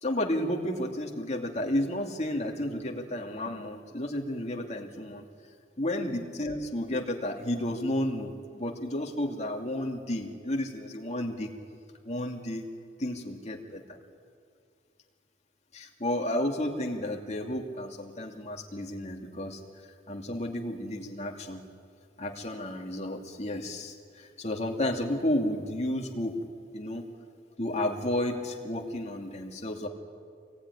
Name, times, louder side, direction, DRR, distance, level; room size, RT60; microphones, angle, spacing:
voice 1, 0.0-5.2 5.8-11.5 12.0-12.7 13.0-13.8 15.7-21.6 22.2-26.4 26.7-27.0 27.6-29.9, left 1 dB, 40° left, 2 dB, 2.6 m, -32 dB
26.5 x 21.5 x 9.9 m, 2.3 s
head